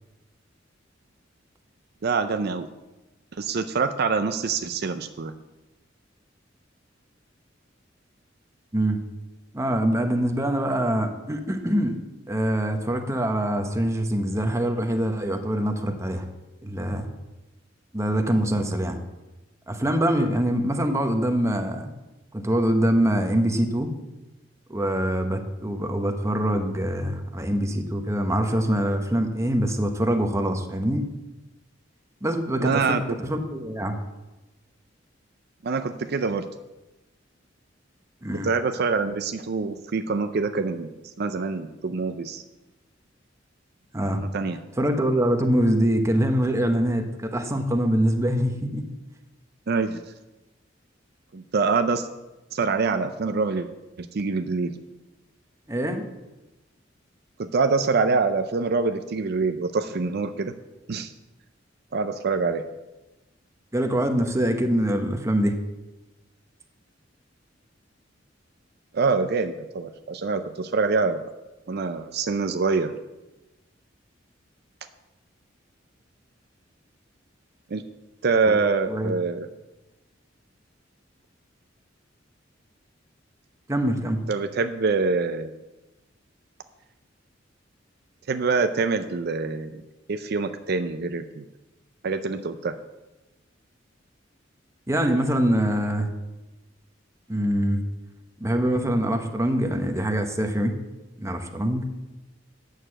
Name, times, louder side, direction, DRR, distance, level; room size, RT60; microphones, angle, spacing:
voice 1, 2.0-2.7 3.4-5.3 32.6-33.2 35.6-36.5 38.4-42.4 44.1-44.6 49.7-50.0 51.3-52.1 52.5-53.7 54.0-54.8 57.4-60.5 60.9-61.1 61.9-62.6 68.9-71.3 71.7-72.9 77.7-77.8 78.2-79.5 84.3-85.5 88.3-89.8 90.1-91.5 92.0-92.8, right 4 dB, 55° right, 9 dB, 0.5 m, -25 dB
voice 2, 9.5-12.0 12.3-16.3 16.6-17.1 17.9-19.0 19.7-21.9 22.3-23.9 24.7-31.0 32.2-34.0 38.2-38.5 43.9-44.2 44.8-48.9 55.7-56.1 63.7-65.6 78.5-78.6 78.9-79.1 83.7-84.2 94.9-96.1 97.3-97.8 98.4-100.7 101.2-101.8, right 1 dB, 15° right, 5 dB, 0.9 m, -24 dB
9.0 x 6.5 x 7.5 m, 1.1 s
head